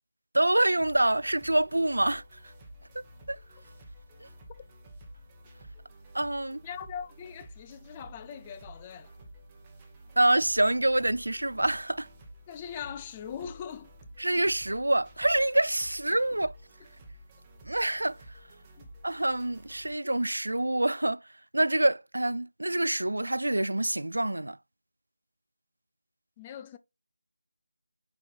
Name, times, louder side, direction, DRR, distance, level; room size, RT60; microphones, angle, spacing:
voice 1, 0.3-2.2 3.3-3.4 4.2-4.3 6.1-6.6 10.2-12.1 14.2-16.6 17.7-18.2 19.0-21.2 21.5-24.6, right 1 dB, 75° right, 0.3 m, -26 dB
sound 1, 0.8-19.9, right 1 dB, 15° right, 1.3 m, -51 dB
voice 2, 6.6-9.1 12.5-13.9 18.8-18.9 26.4-26.8, left 8 dB, 20° left, 0.5 m, -41 dB
8.2 x 4.8 x 2.4 m
figure-of-eight pair, 160°, 0 cm